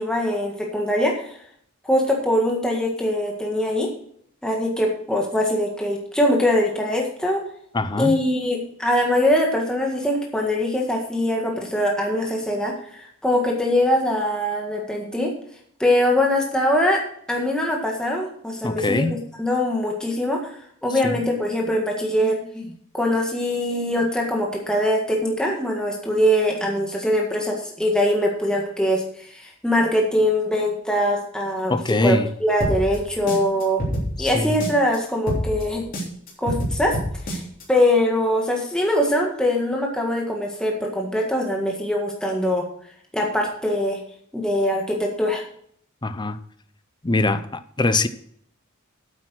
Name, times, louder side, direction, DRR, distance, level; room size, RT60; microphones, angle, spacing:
voice 1, 0.0-1.4 1.8-3.9 4.4-7.4 8.0-15.3 15.8-17.0 17.3-31.7 32.0-33.8 34.2-35.8 36.4-37.0 37.3-37.4 37.7-42.7 43.1-44.0 44.3-45.4, left 1 dB, 5° left, 1.7 m, -22 dB
voice 2, 7.7-8.2 18.6-19.2 21.0-21.2 31.7-32.3 34.2-34.5 46.0-46.4 47.0-48.1, left 2 dB, 20° left, 0.6 m, -22 dB
sound 1, 32.6-35.0 35.3-37.6, equal, 40° left, 3.4 m, -27 dB
8.8 x 8.4 x 6.3 m
head